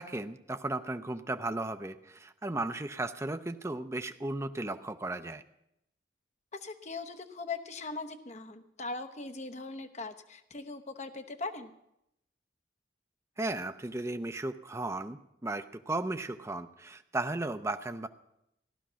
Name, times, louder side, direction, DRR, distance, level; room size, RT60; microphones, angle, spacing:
voice 1, 0.0-5.4 13.4-18.1, right 2 dB, 15° right, 8 dB, 0.6 m, -35 dB
voice 2, 6.5-11.7, left 3 dB, 40° left, 8 dB, 1.0 m, -40 dB
15.5 x 11.5 x 6.2 m, 0.82 s
head